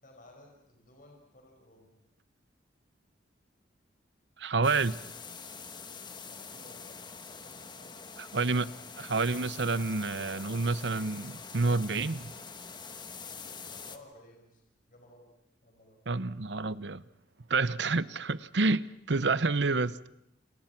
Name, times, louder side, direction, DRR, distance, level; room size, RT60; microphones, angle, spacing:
voice 1, 0.0-2.0 6.3-7.0 7.4-8.0 13.7-14.6 14.9-15.3 15.6-16.0, left 1 dB, 50° left, 5.6 m, -56 dB
voice 2, 4.4-5.0 8.3-12.3 16.1-17.0 17.5-20.1, right 3 dB, 70° right, 0.9 m, -29 dB
sound 1, 4.6-14.0, left 5 dB, 25° left, 1.5 m, -45 dB
28.5 x 28.0 x 6.0 m
head